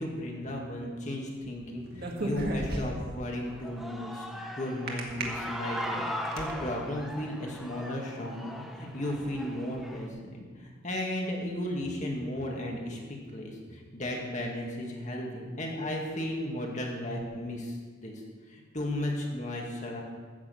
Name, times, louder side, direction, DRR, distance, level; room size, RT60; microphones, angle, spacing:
voice 1, 0.0-4.3 4.6-13.0 13.3-17.8 18.0-18.2 18.5-20.0, left 1 dB, 40° left, 0 dB, 2.1 m, -35 dB
sound 1, 1.9-3.2 4.9-5.2 5.8-6.5, right 1 dB, 50° right, 1.8 m, -32 dB
Human voice / Cheering, 3.5-10.1, equal, ahead, 0.9 m, -39 dB
13.5 x 6.5 x 8.0 m, 1.5 s
head